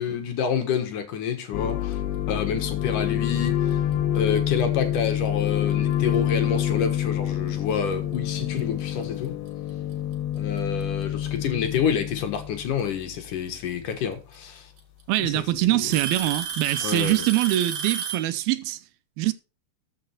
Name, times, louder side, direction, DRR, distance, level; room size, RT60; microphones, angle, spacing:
voice 1, 0.0-2.0 2.3-3.8 4.1-9.4 10.4-14.7 15.2-15.4 15.7-15.9 16.8-17.2, left 7 dB, 60° left, 2.8 m, -28 dB
sound 1, 1.5-13.0, left 11 dB, 85° left, 2.9 m, -27 dB
Alarm / Tick-tock, 4.4-4.6 5.5-5.6 6.4-6.5 8.1-8.2 9.5-9.6 10.8-11.3 13.0-13.1 14.3-14.4 14.8-15.2 15.9-18.3, right 7 dB, 50° right, 3.1 m, -31 dB
voice 2, 15.1-18.8 19.2-19.3, right 16 dB, 80° right, 2.5 m, -24 dB
13.5 x 6.6 x 4.4 m
omnidirectional pair, 4.5 m